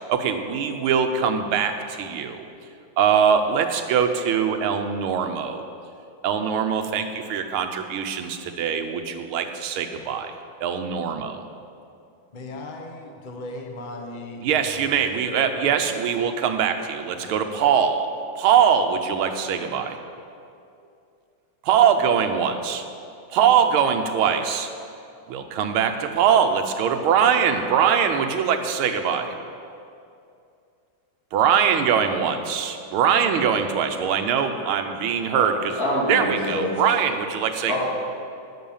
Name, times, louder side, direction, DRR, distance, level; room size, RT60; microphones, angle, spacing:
voice 1, 0.1-2.4 3.0-5.6 6.2-10.4 10.6-11.4 14.4-18.1 18.4-20.0 21.6-22.8 23.3-24.7 25.3-29.4 31.3-35.8 36.1-37.8, right 7 dB, 85° right, 7 dB, 1.6 m, -22 dB
voice 2, 12.3-15.0 15.3-15.8 17.2-17.5, left 2 dB, 65° left, 3 dB, 0.4 m, -37 dB
voice 3, 35.8-36.7 37.7-37.8, left 1 dB, 45° left, -7 dB, 3.2 m, -25 dB
10.5 x 6.4 x 7.1 m, 2.5 s
omnidirectional pair, 2.3 m